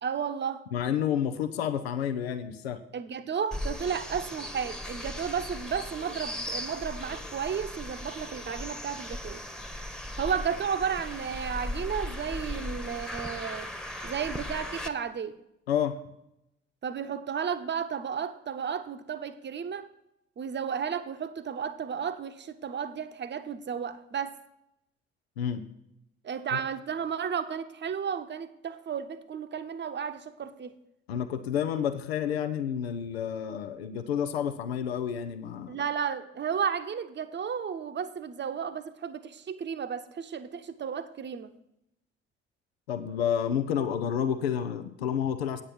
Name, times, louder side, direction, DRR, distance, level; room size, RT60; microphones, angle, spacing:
voice 1, 0.0-0.6 2.9-9.4 10.2-13.7 14.0-15.4 16.8-19.9 20.4-24.4 26.2-30.8 35.7-41.5, right 7 dB, 35° right, 10 dB, 0.9 m, -33 dB
voice 2, 0.7-2.8 15.7-16.0 25.4-25.6 26.5-26.6 31.1-35.8 42.9-45.6, left 8 dB, 80° left, 9 dB, 0.6 m, -30 dB
sound 1, 3.5-14.9, left 1 dB, ahead, 1.1 m, -37 dB
8.8 x 8.7 x 5.9 m, 0.82 s
figure-of-eight pair, 45°, 30 cm